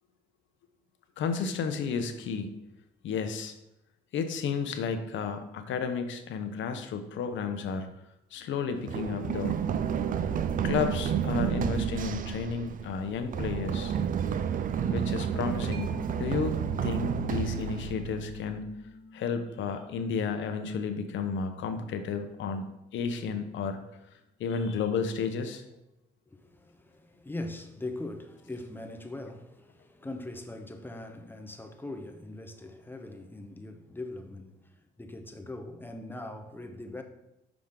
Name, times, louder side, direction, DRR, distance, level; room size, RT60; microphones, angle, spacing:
voice 1, 1.2-2.6 3.0-3.5 4.1-7.9 8.3-9.6 10.6-13.9 14.9-16.5 16.8-18.8 19.1-22.7 22.9-23.8 24.4-25.6, left 5 dB, 70° left, 0.7 m, -32 dB
Run, 8.9-18.6, right 8 dB, 45° right, 0.4 m, -30 dB
Mallet percussion, 15.7-23.0, left 1 dB, 65° right, 1.0 m, -49 dB
voice 2, 26.3-37.0, left 2 dB, 10° left, 0.7 m, -41 dB
5.9 x 5.0 x 3.7 m
cardioid pair, 90°, 20 cm